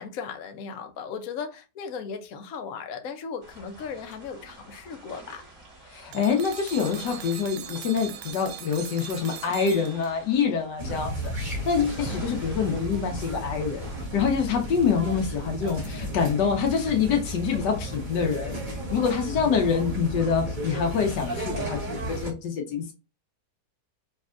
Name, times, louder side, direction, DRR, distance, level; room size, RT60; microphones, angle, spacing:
voice 1, 0.0-5.4, left 6 dB, 65° left, 1.1 m, -37 dB
sound 1, 3.4-14.0, right 1 dB, 50° right, 3.0 m, -48 dB
voice 2, 5.9-18.6 18.9-22.9, left 6 dB, 80° left, 1.5 m, -26 dB
sound 2, 6.1-10.4, right 11 dB, 90° right, 0.6 m, -41 dB
sound 3, 10.8-22.3, equal, 30° right, 1.6 m, -33 dB
5.4 x 3.3 x 2.4 m
omnidirectional pair, 1.8 m